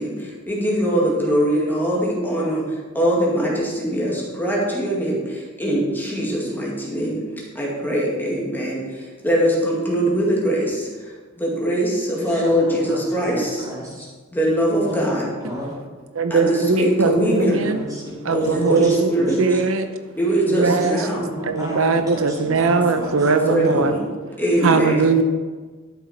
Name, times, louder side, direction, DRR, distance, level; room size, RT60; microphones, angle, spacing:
voice 1, 0.0-7.2 7.5-10.9 11.4-13.7 14.3-15.3 16.3-17.6 18.3-19.6 20.2-21.3 22.7-24.1 24.4-25.0, right 1 dB, 10° left, -4 dB, 2.2 m, -22 dB
voice 2, 12.2-13.0 13.3-14.0 14.8-15.7 17.2-17.3 17.6-19.3 20.6-20.9 21.1-23.9 24.9-25.2, equal, 15° right, -4 dB, 3.5 m, -33 dB
voice 3, 16.1-17.8 18.2-19.1 19.4-19.9 20.5-21.1 21.4-23.9 24.6-25.2, right 4 dB, 70° right, 8 dB, 0.7 m, -20 dB
12.0 x 7.3 x 4.3 m, 1.4 s
head